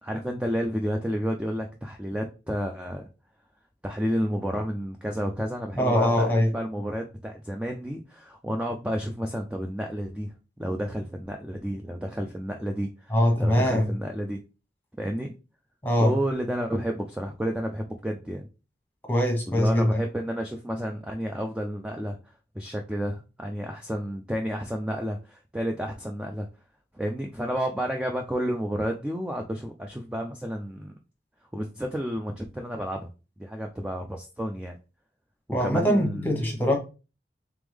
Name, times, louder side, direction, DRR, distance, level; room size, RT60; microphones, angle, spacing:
voice 1, 0.0-3.1 3.8-10.3 10.6-14.4 15.0-15.3 16.0-18.5 19.5-22.2 22.6-26.5 26.9-30.9 31.5-33.1 33.4-34.8 35.6-36.3, equal, 5° right, 0.3 m, -31 dB
voice 2, 5.8-6.5 13.1-13.9 15.8-16.1 19.1-19.9 35.5-36.8, equal, 10° left, 1.1 m, -22 dB
3.5 x 3.5 x 3.4 m
head